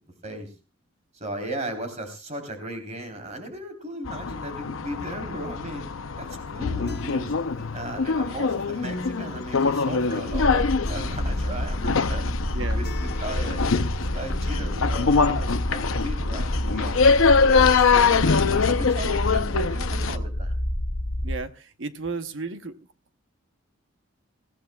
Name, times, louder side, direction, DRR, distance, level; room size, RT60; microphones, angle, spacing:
voice 1, 1.1-5.9 6.2-7.4 7.7-12.3 12.7-20.5, right 1 dB, 35° right, 6 dB, 3.5 m, -36 dB
sound 1, 4.1-20.2, left 5 dB, 85° left, 0.7 m, -24 dB
Acoustic guitar, 6.9-14.8, left 2 dB, 50° left, 0.9 m, -41 dB
sound 2, 10.3-21.4, equal, 70° left, 1.7 m, -28 dB
voice 2, 21.2-22.8, right 3 dB, 65° right, 10 dB, 0.9 m, -33 dB
20.5 x 15.5 x 2.3 m, 0.31 s
head